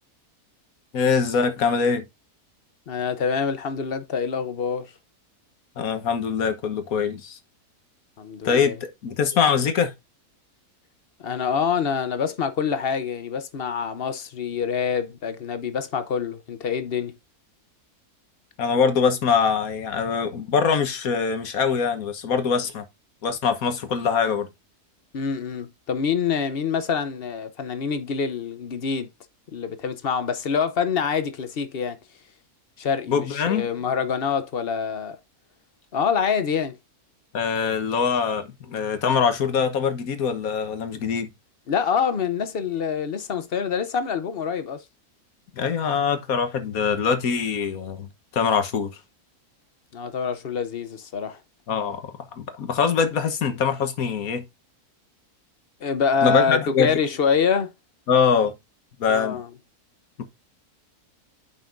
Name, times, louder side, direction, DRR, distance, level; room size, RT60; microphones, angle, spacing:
voice 1, 0.9-2.0 5.8-7.4 8.4-9.9 18.6-22.8 23.2-24.5 33.1-33.7 37.3-41.3 45.6-48.9 51.7-52.0 52.4-54.4 56.2-57.0 58.1-58.5 59.0-59.4 60.2-60.3, left 6 dB, 65° left, 1.6 m, -23 dB
voice 2, 2.9-4.9 8.2-8.8 11.2-17.1 25.1-29.1 29.5-32.0 32.8-35.2 35.9-36.8 41.7-44.8 49.9-51.4 55.8-57.7 59.1-59.5, left 6 dB, 50° left, 0.9 m, -26 dB
10.0 x 5.5 x 2.6 m
omnidirectional pair, 1.6 m